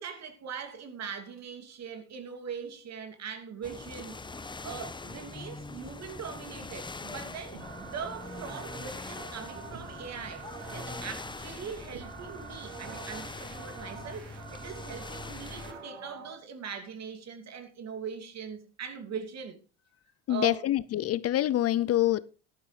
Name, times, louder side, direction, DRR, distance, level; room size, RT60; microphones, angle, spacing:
voice 1, 0.0-4.2 4.6-19.6 20.3-20.6, right 6 dB, 45° right, 2.8 m, -41 dB
sound 1, 3.6-15.7, left 3 dB, 15° left, 1.0 m, -43 dB
sound 2, 7.5-16.3, right 6 dB, 85° right, 3.1 m, -46 dB
voice 2, 20.3-22.2, left 13 dB, 45° left, 0.5 m, -26 dB
14.0 x 12.0 x 3.3 m
supercardioid pair, 85°, 35 cm